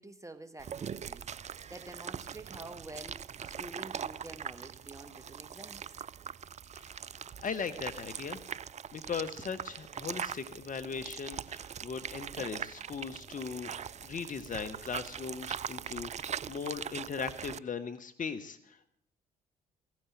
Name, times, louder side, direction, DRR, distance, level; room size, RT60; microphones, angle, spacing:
voice 1, 0.0-5.9, right 2 dB, 15° right, 12 dB, 1.8 m, -48 dB
sound 1, 0.6-17.6, right 8 dB, 35° right, 0.5 m, -42 dB
voice 2, 7.4-8.4 8.9-13.7 14.0-18.9, left 6 dB, 45° left, 10 dB, 1.3 m, -38 dB
16.0 x 9.6 x 7.3 m, 0.65 s
hypercardioid pair, 50°, 19 cm